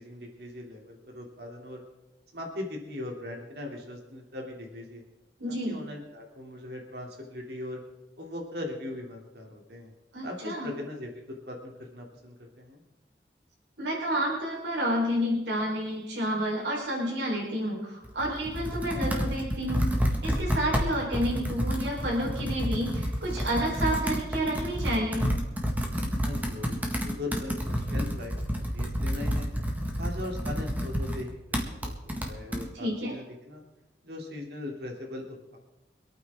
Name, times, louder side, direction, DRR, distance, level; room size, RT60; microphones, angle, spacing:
voice 1, 0.0-1.8 2.3-5.0 5.5-7.8 8.2-9.9 10.2-12.8 26.2-29.5 30.0-33.6 34.0-35.6, left 1 dB, 65° right, 0 dB, 3.0 m, -40 dB
voice 2, 5.4-5.8 10.1-10.7 13.8-25.3 32.7-33.1, equal, 80° right, -3 dB, 4.3 m, -30 dB
Computer keyboard, 18.0-32.7, equal, 10° right, 1.7 m, -30 dB
26.0 x 9.1 x 3.7 m, 1.0 s
head